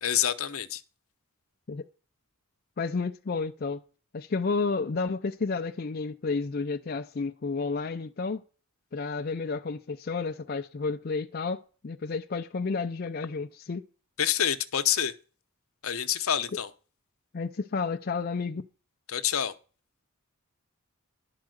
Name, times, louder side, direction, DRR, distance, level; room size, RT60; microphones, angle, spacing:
voice 1, 0.0-0.8 14.2-15.1 15.8-16.7 19.1-19.5, left 10 dB, 75° left, 0.8 m, -27 dB
voice 2, 2.8-3.8 4.1-8.4 8.9-13.8 17.3-18.6, left 4 dB, 45° left, 0.5 m, -31 dB
11.5 x 4.8 x 7.8 m
head